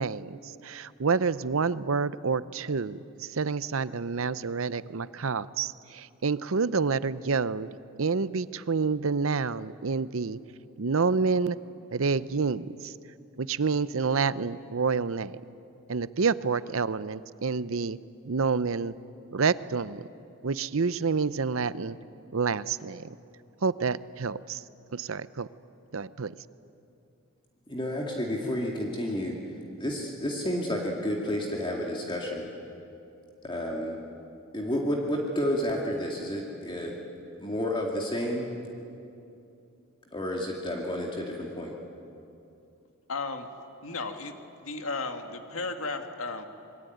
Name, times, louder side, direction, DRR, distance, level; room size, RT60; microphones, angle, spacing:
voice 1, 0.0-7.7 8.0-10.4 10.8-11.6 11.9-12.9 13.4-15.4 15.9-18.0 18.3-19.0 19.3-20.1 20.4-22.0 22.3-23.1 23.6-24.6 24.9-25.5 25.9-26.3, right 5 dB, 70° right, 16 dB, 0.7 m, -28 dB
voice 2, 27.7-29.4 29.8-32.5 33.4-34.0 34.5-37.0 37.4-38.5 40.1-41.7, equal, 20° left, -1 dB, 2.3 m, -30 dB
voice 3, 43.1-43.5 43.8-44.3 44.6-46.4, left 3 dB, 70° left, 6 dB, 2.0 m, -34 dB
26.5 x 22.5 x 9.4 m, 2.7 s
head